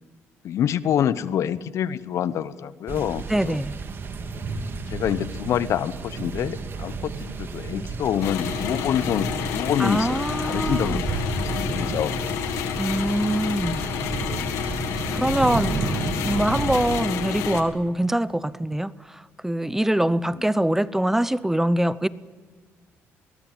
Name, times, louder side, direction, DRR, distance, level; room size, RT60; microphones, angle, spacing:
voice 1, 0.4-3.6 4.9-12.4 20.3-20.5, left 9 dB, 65° left, 0.9 m, -27 dB
sound 1, 2.9-17.0, right 4 dB, 45° right, 2.3 m, -32 dB
voice 2, 3.3-3.7 9.8-11.0 12.8-13.8 15.1-22.1, right 1 dB, 5° right, 0.7 m, -24 dB
sound 2, 8.2-17.6, left 8 dB, 90° left, 1.8 m, -29 dB
22.0 x 19.0 x 9.0 m
cardioid pair, 95°, 5 cm